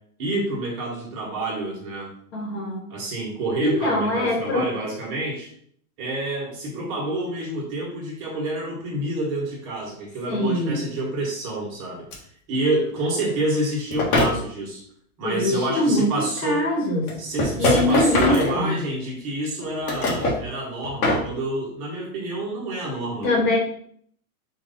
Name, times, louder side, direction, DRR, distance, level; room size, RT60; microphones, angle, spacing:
voice 1, 0.2-2.1 2.9-5.5 6.0-12.0 12.5-14.8 15.2-16.7 17.2-23.3, right 1 dB, 30° right, -4 dB, 1.3 m, -28 dB
voice 2, 2.3-2.8 3.6-4.6 10.3-10.8 15.2-17.1 17.6-18.7 23.2-23.6, left 1 dB, 45° left, -1 dB, 1.5 m, -23 dB
sound 1, 12.1-12.2 13.9-14.4 16.1-16.2 17.1-19.0 19.6-20.4 20.8-21.3, left 1 dB, 85° left, 1.7 m, -22 dB
4.7 x 2.6 x 4.1 m, 0.63 s
supercardioid pair, 170°, 43 cm